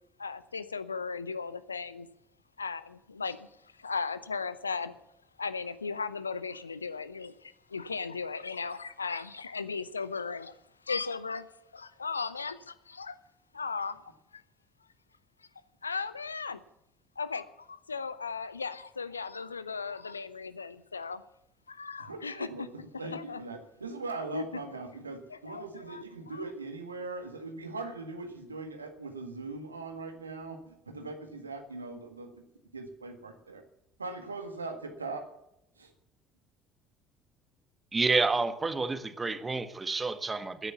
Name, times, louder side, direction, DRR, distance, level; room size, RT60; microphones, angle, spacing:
voice 1, 0.2-2.1 2.6-4.9 5.4-10.6 10.9-11.5 11.7-13.2 13.5-14.0 14.3-14.4 15.8-16.6 17.2-21.2 21.7-22.7 22.9-23.4 24.3-24.4 25.3-26.4, left 5 dB, 85° left, 15 dB, 0.6 m, -37 dB
voice 2, 22.1-22.7 23.0-32.4 32.7-33.6 34.0-35.3 35.8-35.9, right 3 dB, 85° right, 6 dB, 1.7 m, -40 dB
voice 3, 37.9-40.7, right 3 dB, 20° right, 10 dB, 1.6 m, -29 dB
15.0 x 10.0 x 7.0 m, 0.82 s
figure-of-eight pair, 55°, 0 cm